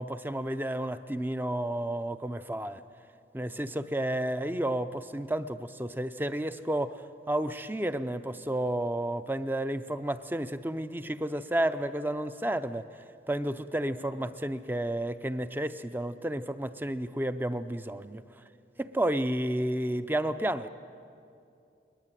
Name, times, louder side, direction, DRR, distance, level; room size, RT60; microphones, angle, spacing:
voice 1, 0.0-2.8 3.3-12.9 13.3-18.2 18.8-20.7, right 1 dB, 10° right, 11 dB, 0.6 m, -31 dB
21.0 x 20.5 x 9.1 m, 2.5 s
head